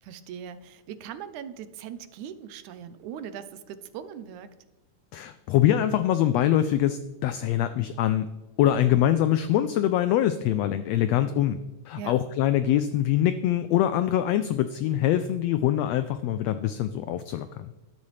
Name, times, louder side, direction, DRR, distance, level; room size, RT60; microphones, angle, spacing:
voice 1, 0.0-4.6 12.0-12.2, right 8 dB, 80° right, 12 dB, 2.1 m, -40 dB
voice 2, 5.1-8.3 8.6-11.6 11.9-17.7, left 11 dB, 85° left, 11 dB, 1.5 m, -24 dB
13.0 x 12.0 x 3.3 m, 1.2 s
omnidirectional pair, 3.5 m